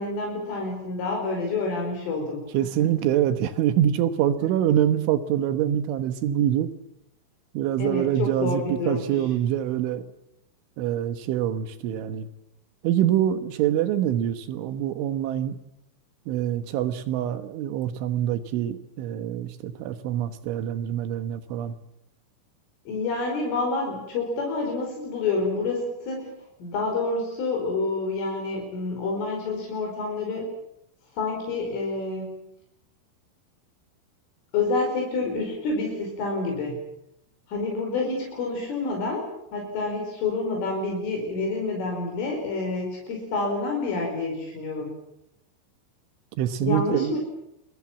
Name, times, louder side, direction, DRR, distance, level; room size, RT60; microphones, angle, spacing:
voice 1, 0.0-2.4 2.8-2.9 7.8-9.1 22.9-26.3 26.6-30.4 31.1-32.4 34.5-36.8 37.5-44.9 46.6-47.2, left 3 dB, 75° left, 1 dB, 7.5 m, -28 dB
voice 2, 2.5-6.7 7.6-10.0 10.8-12.3 12.8-15.6 16.3-21.8 46.4-47.2, right 11 dB, 75° right, 11 dB, 3.5 m, -25 dB
28.5 x 22.5 x 7.4 m, 0.79 s
omnidirectional pair, 5.8 m